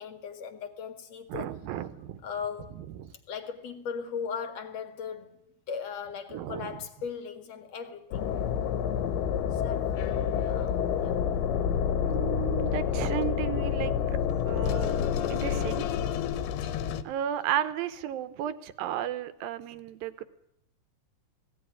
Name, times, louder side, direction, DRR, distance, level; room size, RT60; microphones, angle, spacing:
voice 1, 0.0-1.5 2.2-2.7 3.3-5.4 5.7-8.3 9.5-11.2, left 6 dB, 50° left, 2.5 m, -38 dB
voice 2, 1.3-2.2 2.8-3.1 6.3-6.8 12.0-14.2 14.5-15.0 15.3-15.9 17.0-20.2, right 11 dB, 70° right, 2.5 m, -34 dB
sound 1, 8.1-17.0, left 8 dB, 80° left, 3.0 m, -28 dB
18.5 x 17.0 x 9.8 m
omnidirectional pair, 4.7 m